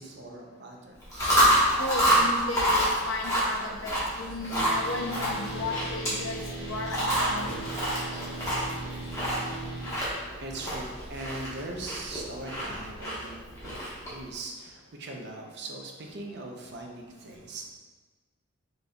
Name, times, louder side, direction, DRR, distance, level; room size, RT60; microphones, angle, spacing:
voice 1, 0.0-1.3 4.9-5.0 7.4-7.6 8.1-8.3 9.1-9.4 10.4-13.4 13.6-17.7, right 2 dB, 55° right, 1 dB, 0.6 m, -41 dB
Chewing mastication, 1.0-14.2, right 1 dB, 15° left, 1.2 m, -28 dB
voice 2, 1.8-7.5, left 3 dB, 65° left, 2 dB, 0.6 m, -34 dB
sound 1, 4.5-9.9, right 2 dB, 10° right, 1.3 m, -38 dB
5.2 x 3.9 x 2.3 m, 1.3 s
head